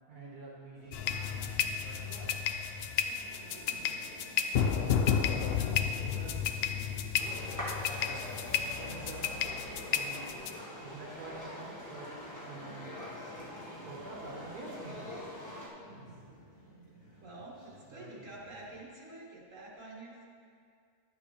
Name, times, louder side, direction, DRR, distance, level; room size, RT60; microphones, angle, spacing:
voice 1, 0.1-2.4 5.3-5.6 6.0-6.4 8.0-8.2 8.8-9.3 9.9-10.3 10.7-12.1 12.5-12.9 13.8-15.2 17.9-18.3, right 3 dB, 85° right, -4 dB, 1.8 m, -47 dB
sound 1, 0.7-18.8, right 1 dB, 90° left, 3.4 m, -56 dB
sound 2, 0.9-10.5, left 8 dB, 70° left, 0.6 m, -32 dB
voice 2, 3.5-3.9 5.6-5.8 17.2-20.2, right 2 dB, 60° right, -5 dB, 2.2 m, -48 dB
sound 3, 7.2-15.7, left 1 dB, 10° left, 1.5 m, -44 dB
12.0 x 8.7 x 3.2 m, 2.2 s
omnidirectional pair, 1.6 m